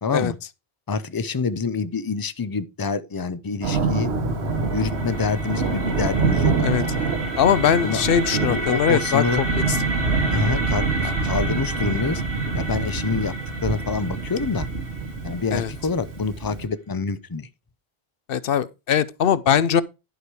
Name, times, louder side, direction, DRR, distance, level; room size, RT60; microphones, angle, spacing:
voice 1, 0.0-0.4 0.9-4.1 4.7-6.7 6.9-7.0 7.8-8.1 8.4-9.4 10.3-12.2 12.5-13.3 13.6-14.7 15.2-17.5, left 4 dB, 25° left, 0.5 m, -27 dB
Thunder, 3.6-16.7, right 4 dB, 90° right, 1.4 m, -26 dB
Bass guitar, 3.8-10.0, left 11 dB, 20° right, 3.6 m, -38 dB
sound 1, 4.2-16.1, right 1 dB, 65° right, 2.1 m, -33 dB
voice 2, 7.4-9.5 15.5-15.7 18.3-19.8, left 8 dB, 65° left, 0.8 m, -21 dB
11.5 x 4.9 x 4.7 m
omnidirectional pair, 1.0 m